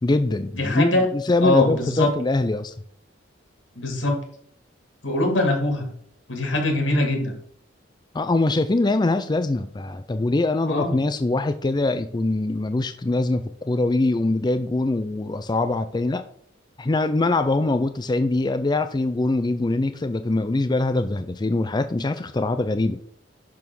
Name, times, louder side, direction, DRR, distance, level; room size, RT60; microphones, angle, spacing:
voice 1, 0.0-2.7 8.1-16.2 16.8-23.1, left 2 dB, 25° left, 9 dB, 0.4 m, -23 dB
voice 2, 0.5-1.1 1.4-2.1 3.8-4.2 5.0-5.9 6.3-7.3 10.7-11.0, left 2 dB, 90° left, 2 dB, 2.6 m, -22 dB
10.5 x 3.7 x 6.3 m, 0.62 s
head